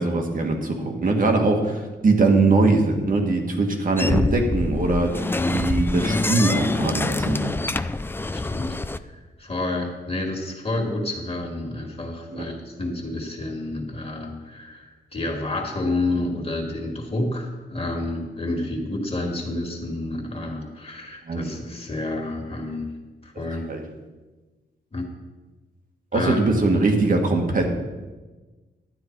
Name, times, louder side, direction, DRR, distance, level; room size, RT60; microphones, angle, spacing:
voice 1, 0.0-7.5 12.3-12.5 21.3-21.5 23.7-23.8 26.1-27.7, right 3 dB, 45° right, 3 dB, 1.8 m, -21 dB
sound 1, 4.0-9.0, left 2 dB, 10° left, 0.3 m, -26 dB
voice 2, 5.3-5.6 6.0-6.2 8.3-8.8 9.4-22.8 23.2-23.7 24.9-25.0 26.1-26.7, left 2 dB, 30° left, 1 dB, 2.1 m, -29 dB
12.0 x 9.4 x 4.6 m, 1.2 s
wide cardioid pair, 115°, 19 cm